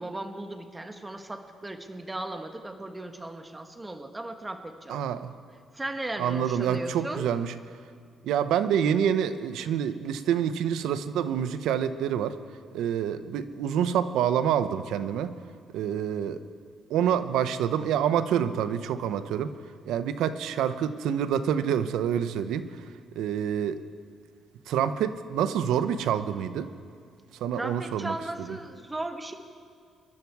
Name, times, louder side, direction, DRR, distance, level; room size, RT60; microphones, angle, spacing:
voice 1, 0.0-5.0 5.7-7.3 27.6-29.4, right 2 dB, 15° right, 6 dB, 1.4 m, -36 dB
voice 2, 4.9-5.4 6.2-7.5 8.2-12.4 12.7-15.4 15.7-16.4 16.9-19.5 19.9-22.8 23.2-23.8 24.7-26.7 27.3-28.6, right 9 dB, 85° right, 12 dB, 0.7 m, -27 dB
25.0 x 12.0 x 4.7 m, 2.3 s
cardioid pair, 90°, 0 cm